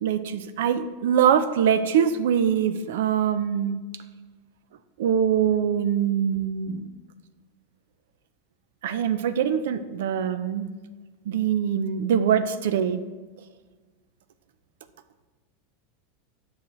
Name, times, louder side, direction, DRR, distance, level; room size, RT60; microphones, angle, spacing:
voice 1, 0.0-3.8 5.0-6.9 8.8-10.7 11.3-13.0, right 8 dB, 80° right, 12 dB, 0.4 m, -23 dB
8.2 x 6.4 x 3.1 m, 1.4 s
supercardioid pair, 140°, 0 cm